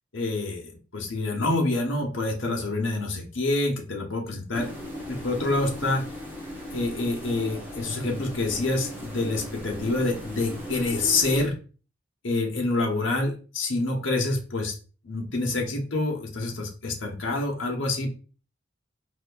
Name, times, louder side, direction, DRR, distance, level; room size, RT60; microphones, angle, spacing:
voice 1, 0.1-4.7 5.1-6.0 6.7-11.6 12.2-14.7 15.0-18.2, left 2 dB, 80° left, 1 dB, 1.0 m, -27 dB
sound 1, 4.5-11.4, left 1 dB, 10° right, 1.0 m, -38 dB
4.2 x 2.9 x 2.3 m, 0.36 s
head